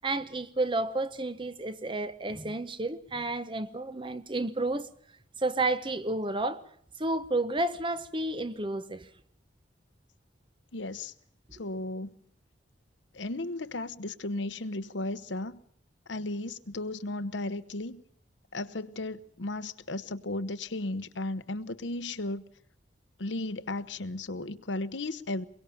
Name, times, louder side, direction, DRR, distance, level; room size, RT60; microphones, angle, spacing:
voice 1, 0.0-4.9 5.4-6.6 7.0-9.1, right 2 dB, 25° right, 0.9 m, -31 dB
voice 2, 10.7-11.1 11.5-12.1 13.1-15.6 16.1-18.0 18.5-22.5 23.2-25.4, left 2 dB, 85° left, 1.1 m, -35 dB
23.0 x 22.5 x 7.0 m
head